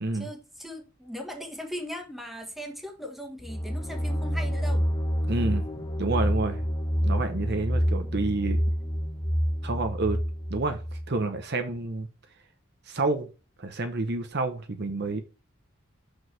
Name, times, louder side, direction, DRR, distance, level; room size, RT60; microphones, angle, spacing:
voice 1, 0.1-4.9, equal, ahead, 1.5 m, -39 dB
sound 1, 3.4-11.1, equal, 20° left, 1.0 m, -28 dB
voice 2, 5.3-5.6 6.0-6.6 7.0-8.6 9.6-10.2 10.5-10.8 11.1-12.1 12.9-13.3 13.6-15.2, right 3 dB, 50° right, 0.9 m, -29 dB
6.3 x 4.9 x 4.7 m
head